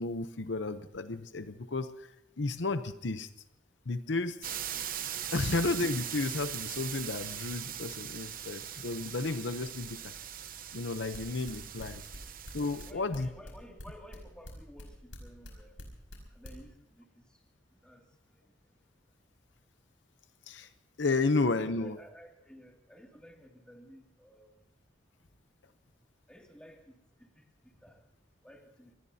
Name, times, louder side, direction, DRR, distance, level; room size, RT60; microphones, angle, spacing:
voice 1, 0.0-3.3 3.9-4.5 5.3-10.1 10.7-12.0 12.5-13.3 20.5-20.7 21.0-22.0, left 3 dB, 70° left, 10 dB, 0.8 m, -32 dB
sound 1, 4.4-12.9, right 10 dB, 45° right, 0.9 m, -40 dB
sound 2, 11.1-16.6, left 1 dB, 85° left, 5.4 m, -45 dB
voice 2, 12.7-15.8 16.3-17.1 17.8-18.1 21.1-24.5 26.3-28.0 28.4-28.9, equal, 5° left, 0 dB, 2.4 m, -54 dB
25.5 x 20.0 x 2.8 m, 0.81 s
head